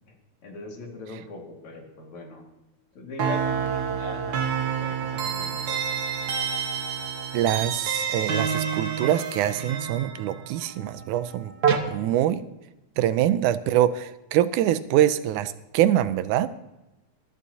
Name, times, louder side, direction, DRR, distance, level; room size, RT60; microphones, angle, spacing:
voice 1, 0.4-2.4 3.0-5.8, left 3 dB, 65° left, 1 dB, 3.3 m, -40 dB
sound 1, 3.2-11.8, right 7 dB, 60° right, 1.3 m, -28 dB
voice 2, 7.3-11.5 11.9-12.4 13.0-16.5, right 12 dB, 85° right, 12 dB, 2.0 m, -24 dB
21.0 x 12.0 x 2.8 m, 0.97 s
omnidirectional pair, 3.5 m